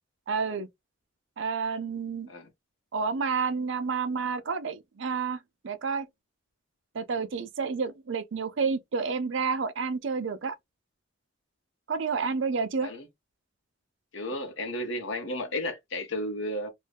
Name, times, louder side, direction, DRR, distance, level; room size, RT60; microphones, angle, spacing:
voice 1, 0.3-0.7 1.4-2.3 2.9-5.4 5.6-6.1 6.9-10.5 11.9-12.9, right 5 dB, 65° right, 0.5 m, -30 dB
voice 2, 14.1-16.7, left 1 dB, 65° left, 0.9 m, -33 dB
2.6 x 2.2 x 3.4 m
head